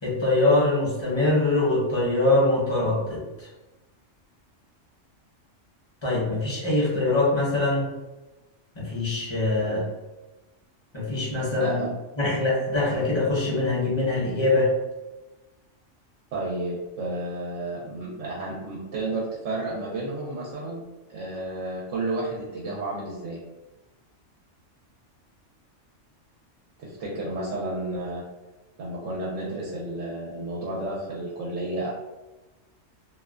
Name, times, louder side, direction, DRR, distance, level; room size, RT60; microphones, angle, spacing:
voice 1, 0.0-3.5 6.0-7.9 8.7-9.8 10.9-11.8 12.2-14.7, left 2 dB, 25° left, -6 dB, 0.7 m, -23 dB
voice 2, 16.3-20.8 21.1-23.4 26.8-28.2 28.8-31.9, right 2 dB, 85° right, -4 dB, 1.0 m, -31 dB
2.5 x 2.2 x 2.3 m, 1.1 s
omnidirectional pair, 1.3 m